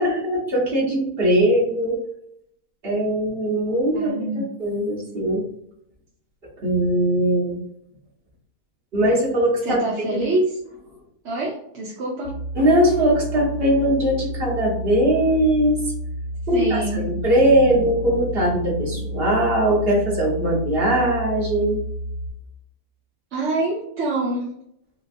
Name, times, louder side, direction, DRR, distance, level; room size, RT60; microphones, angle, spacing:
voice 1, 0.0-2.0 2.8-5.4 6.6-7.6 8.9-9.8 10.1-10.3 12.5-15.8 16.5-21.8, right 1 dB, 40° right, -5 dB, 1.5 m, -20 dB
voice 2, 3.9-4.5 9.6-10.6 11.2-12.4 16.5-17.0 23.3-24.5, right 2 dB, 55° right, -4 dB, 0.9 m, -25 dB
sound 1, 12.2-22.3, equal, 85° left, 1.2 m, -31 dB
4.6 x 2.4 x 2.6 m, 0.73 s
omnidirectional pair, 1.7 m